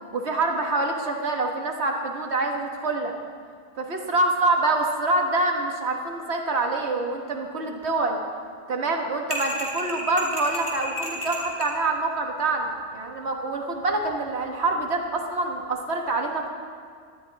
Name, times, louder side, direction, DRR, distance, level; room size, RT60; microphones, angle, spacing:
voice 1, 0.1-3.1 3.8-8.2 8.7-16.5, right 2 dB, 60° right, 2 dB, 1.5 m, -26 dB
sound 1, 9.3-11.8, equal, 20° right, 2.5 m, -32 dB
18.0 x 12.5 x 4.0 m, 2.1 s
omnidirectional pair, 1.3 m